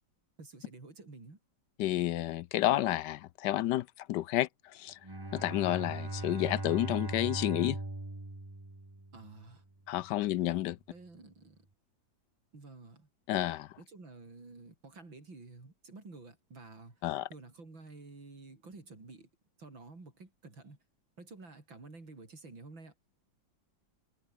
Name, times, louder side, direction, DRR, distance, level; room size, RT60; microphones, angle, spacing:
voice 1, 0.4-1.4 9.1-9.6 10.9-11.7 12.5-13.1 13.8-17.0 17.3-19.3 19.6-20.8 21.2-22.9, right 3 dB, 85° right, 6.4 m, -51 dB
voice 2, 1.8-5.0 5.3-7.8 9.9-10.8 13.3-13.7 17.0-17.3, left 14 dB, 75° left, 1.1 m, -30 dB
Bowed string instrument, 5.0-9.4, right 2 dB, 10° right, 1.9 m, -39 dB
omnidirectional pair, 2.1 m